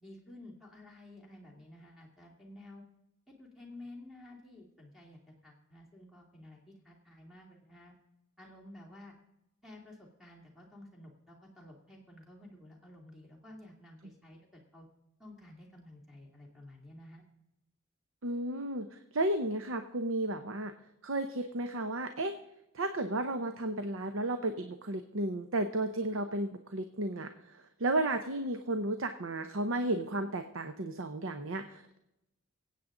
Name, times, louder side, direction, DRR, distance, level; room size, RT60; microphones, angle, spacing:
voice 1, 0.0-2.8 3.3-7.9 8.4-9.1 9.6-14.9 15.2-17.2, left 1 dB, ahead, -1 dB, 2.6 m, -52 dB
voice 2, 18.2-20.7 21.0-22.3 22.7-31.8, right 2 dB, 80° right, 8 dB, 0.8 m, -33 dB
24.0 x 8.5 x 3.8 m, 0.88 s
head